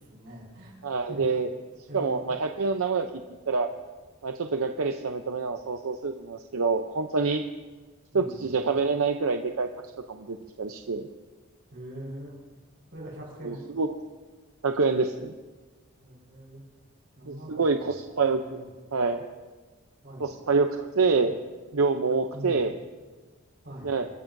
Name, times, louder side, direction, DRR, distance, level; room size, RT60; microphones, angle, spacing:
voice 1, 0.0-0.8 1.1-1.4 1.9-2.4 8.1-8.5 11.7-12.3 12.9-13.7 16.0-16.6 17.2-18.0 18.4-18.7 20.0-20.3 21.2-21.3 22.3-22.6 23.6-23.9, equal, 50° right, -2 dB, 4.8 m, -42 dB
voice 2, 0.8-1.5 1.9-3.1 3.5-3.7 4.2-7.4 8.1-9.7 10.1-11.1 13.4-14.0 14.6-15.3 17.3-18.6 18.9-19.3 20.2-21.4 21.7-22.8 23.8-24.1, right 4 dB, 75° right, 5 dB, 0.7 m, -26 dB
25.5 x 13.5 x 2.7 m, 1.3 s
head